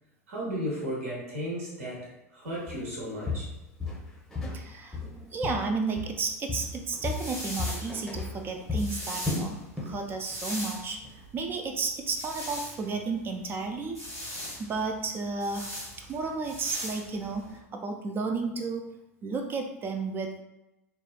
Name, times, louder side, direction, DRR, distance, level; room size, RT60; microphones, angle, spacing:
voice 1, 0.3-3.5, equal, 65° right, -4 dB, 1.0 m, -34 dB
Walk footsteps, 2.7-2.9 3.3-4.6 4.9-6.2 6.5-10.0 10.3-10.6 11.0-11.1, left 3 dB, 5° left, 0.7 m, -34 dB
voice 2, 4.5-14.0 14.6-18.9 19.2-20.4, right 4 dB, 25° right, 4 dB, 0.3 m, -33 dB
sound 1, 6.6-17.6, equal, 90° right, 1.0 m, -40 dB
3.9 x 2.3 x 2.2 m, 0.95 s
figure-of-eight pair, 85°, 8 cm